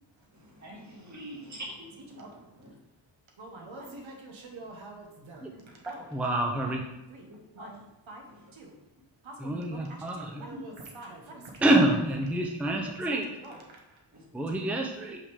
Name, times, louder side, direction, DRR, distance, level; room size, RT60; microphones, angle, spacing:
voice 1, 0.3-2.8 5.5-5.8 7.6-7.7 10.5-10.6 14.1-14.2 14.6-14.7, right 1 dB, 35° right, -2 dB, 1.6 m, -45 dB
voice 2, 3.4-6.1 6.6-6.8 7.1-7.3 7.5-7.8 8.1-8.2 8.5-8.7 9.2-11.7 12.3-14.0 14.5-14.7 15.0-15.1, right 2 dB, 80° right, 0 dB, 1.3 m, -46 dB
voice 3, 6.1-6.8 9.4-10.4 11.6-13.2 14.3-15.2, right 1 dB, 5° right, 2 dB, 0.6 m, -27 dB
5.5 x 3.6 x 4.9 m, 0.97 s
wide cardioid pair, 90°, 46 cm